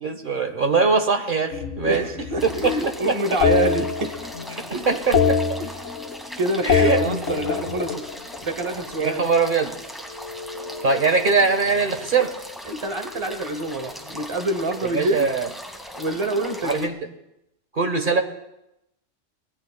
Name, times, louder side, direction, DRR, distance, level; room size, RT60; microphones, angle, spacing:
voice 1, 0.0-2.0 2.6-2.7 4.9-5.4 6.6-7.0 9.0-9.7 10.8-12.3 14.9-15.5 16.6-16.9 17.7-18.2, right 4 dB, 45° right, 6 dB, 1.4 m, -21 dB
sound 1, 1.5-2.8 3.4-4.6 4.8-6.3 6.6-8.9 10.1-11.9, left 6 dB, 85° left, 1.4 m, -25 dB
voice 2, 1.8-4.1 4.7-5.0 5.6-5.7 6.4-8.1 8.4-9.2 12.7-15.3 16.0-16.9, right 2 dB, 25° right, 7 dB, 0.9 m, -26 dB
sound 2, 2.4-16.9, equal, ahead, 1.9 m, -38 dB
25.5 x 20.0 x 2.3 m, 0.87 s
omnidirectional pair, 1.3 m